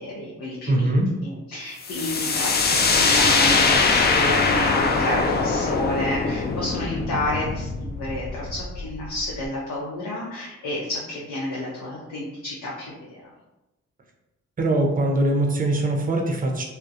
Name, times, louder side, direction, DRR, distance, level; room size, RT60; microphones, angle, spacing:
voice 1, 0.0-13.3, left 1 dB, 70° left, -5 dB, 0.7 m, -30 dB
voice 2, 0.7-1.1 14.6-16.6, right 1 dB, 25° right, 2 dB, 0.6 m, -22 dB
sound 1, 1.8-9.4, left 4 dB, 35° left, 0.4 m, -22 dB
2.3 x 2.1 x 2.7 m, 1.0 s
supercardioid pair, 50°, 31 cm